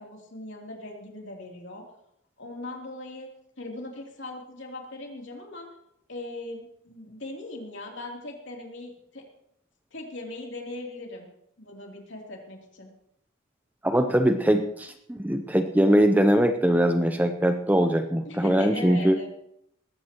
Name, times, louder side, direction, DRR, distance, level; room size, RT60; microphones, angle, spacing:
voice 1, 0.0-1.8 2.4-3.3 3.6-5.7 6.1-9.2 9.9-11.3 11.6-12.9 18.2-19.3, left 2 dB, 55° left, 0 dB, 3.2 m, -39 dB
voice 2, 13.8-19.2, equal, 10° right, 7 dB, 0.6 m, -22 dB
19.5 x 15.5 x 3.0 m, 0.75 s
head